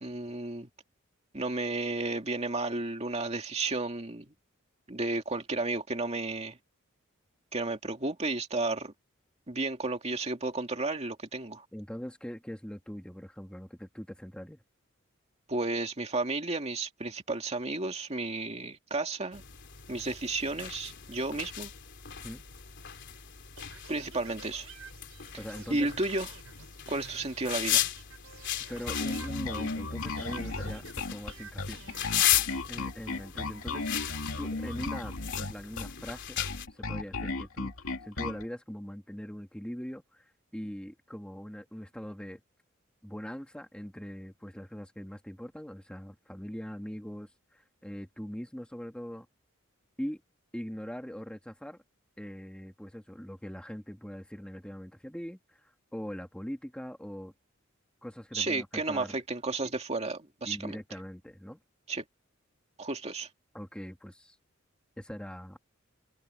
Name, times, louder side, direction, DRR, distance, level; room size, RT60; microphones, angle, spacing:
voice 1, 0.0-0.7 1.3-4.3 4.9-6.6 7.5-8.9 9.5-11.7 15.5-19.4 19.9-21.7 23.9-24.7 25.7-26.3 26.9-27.8 58.3-60.8 61.9-62.0 62.8-63.3, right 2 dB, 30° right, 2.4 m, -32 dB
voice 2, 11.7-14.6 22.2-22.4 25.4-25.9 28.7-31.8 32.7-33.9 34.4-36.4 36.7-37.7 38.0-42.4 43.0-49.3 50.0-50.2 50.5-51.8 52.2-57.3 58.0-59.2 60.5-61.6 63.5-64.4 65.0-65.6, equal, 5° left, 1.7 m, -41 dB
sound 1, 19.3-36.7, left 11 dB, 60° left, 3.5 m, -36 dB
sound 2, 23.6-29.8 30.2-32.4, right 6 dB, 85° right, 4.4 m, -52 dB
Bass guitar, 28.9-38.4, left 3 dB, 90° left, 2.5 m, -35 dB
head